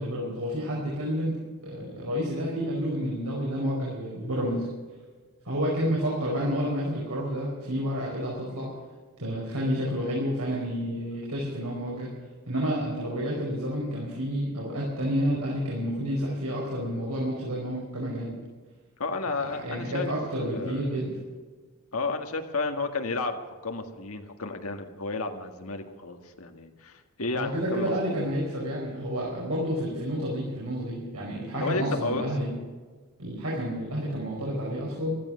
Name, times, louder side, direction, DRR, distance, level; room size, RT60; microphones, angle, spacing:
voice 1, 0.0-4.7 5.4-8.7 9.2-12.1 12.5-18.4 19.6-21.2 27.3-32.5 33.2-35.2, equal, 85° right, -4 dB, 5.0 m, -30 dB
voice 2, 19.0-20.1 20.5-21.0 21.9-28.3 29.3-29.4 31.6-32.2, left 3 dB, 75° left, 5 dB, 1.9 m, -32 dB
15.5 x 13.5 x 6.5 m, 1.4 s
head